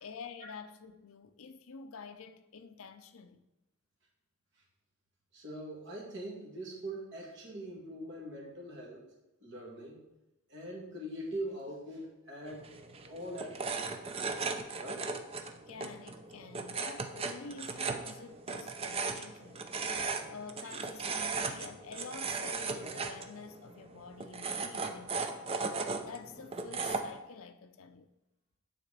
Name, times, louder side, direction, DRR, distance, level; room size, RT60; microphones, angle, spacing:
voice 1, 0.0-3.4 15.5-19.6 20.3-25.5 26.0-28.1, left 5 dB, 70° left, 0.5 m, -48 dB
voice 2, 5.3-9.0 9.4-10.0 10.5-12.6 13.1-13.9 14.8-15.1, right 1 dB, 55° right, 2.1 m, -42 dB
sound 1, 12.5-27.2, right 4 dB, 25° right, 0.5 m, -37 dB
9.8 x 4.1 x 5.0 m
head